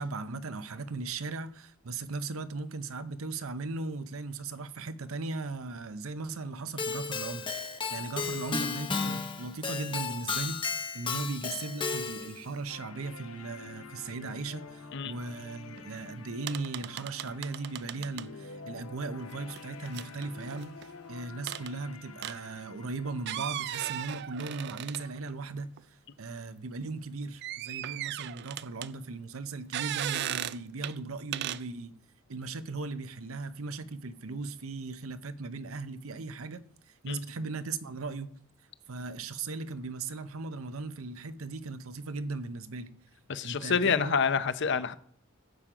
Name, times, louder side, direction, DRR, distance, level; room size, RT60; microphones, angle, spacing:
voice 1, 0.0-20.8 21.1-25.7 26.2-32.0 32.3-38.3 38.9-42.9 43.4-44.2, right 3 dB, 75° right, 0.7 m, -38 dB
Keyboard (musical), 6.8-12.4, left 4 dB, 25° left, 0.8 m, -34 dB
sound 1, 12.7-24.7, left 4 dB, 80° left, 0.9 m, -49 dB
sound 2, 15.8-15.9 16.1-16.2 16.5-18.3 19.5-20.9 21.5-21.7 22.2-22.4 23.2-25.3 25.8-25.9 27.4-28.9 29.7-30.6 30.8-30.9 31.3-31.6, right 12 dB, 50° right, 0.3 m, -36 dB
voice 2, 43.3-44.9, left 6 dB, 55° left, 0.6 m, -28 dB
11.5 x 7.5 x 5.0 m
head